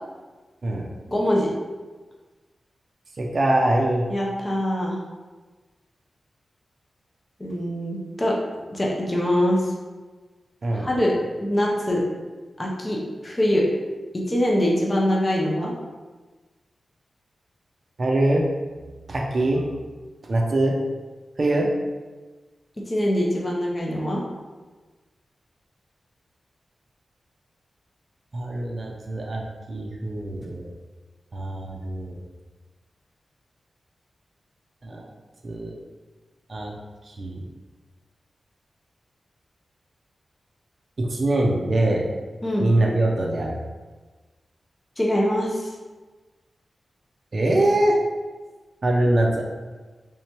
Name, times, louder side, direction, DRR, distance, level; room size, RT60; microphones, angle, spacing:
voice 1, 1.1-1.5 4.1-5.0 7.4-8.3 8.7-9.7 10.7-11.1 11.4-12.0 12.6-13.7 14.3-15.7 22.9-24.2 42.4-42.7 45.0-45.7, equal, 20° left, -3 dB, 0.6 m, -23 dB
voice 2, 3.2-4.0 10.6-10.9 18.0-18.4 19.1-19.8 20.3-20.8 21.4-21.7 28.3-29.4 29.7-30.7 31.3-32.2 34.8-35.1 35.4-35.8 36.5-36.7 37.1-37.4 41.0-42.1 42.6-43.6 47.3-48.0 48.8-49.4, right 1 dB, 40° right, -1 dB, 0.4 m, -23 dB
3.4 x 3.1 x 2.8 m, 1.3 s
wide cardioid pair, 155°, 0 cm